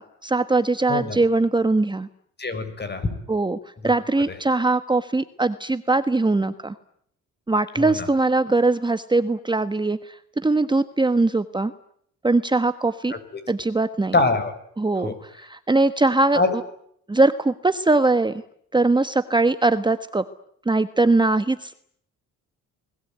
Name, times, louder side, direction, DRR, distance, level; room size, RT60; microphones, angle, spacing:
voice 1, 0.0-2.1 3.3-3.6 3.8-6.7 7.5-11.7 12.2-13.1 13.5-14.2 14.8-16.6 17.1-18.4 18.7-20.2 20.6-21.7, right 2 dB, 15° right, 11 dB, 1.3 m, -21 dB
voice 2, 2.4-3.1 7.8-7.9 14.1-14.5 15.0-15.1 16.4-16.5, left 3 dB, 35° left, 11 dB, 7.1 m, -23 dB
29.0 x 21.0 x 9.4 m, 0.69 s
cardioid pair, 90°, 30 cm